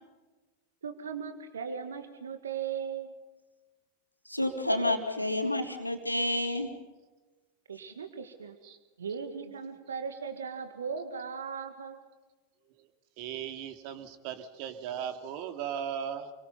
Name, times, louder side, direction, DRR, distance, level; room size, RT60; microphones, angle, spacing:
voice 1, 0.8-3.1 7.7-8.6 9.0-12.0, right 6 dB, 70° right, 7 dB, 2.1 m, -38 dB
voice 2, 4.3-6.7, left 1 dB, 90° left, 2 dB, 3.4 m, -29 dB
voice 3, 13.2-16.3, right 8 dB, 45° right, 6 dB, 2.9 m, -37 dB
29.5 x 23.5 x 5.5 m, 1.2 s
figure-of-eight pair, 90°, 0 cm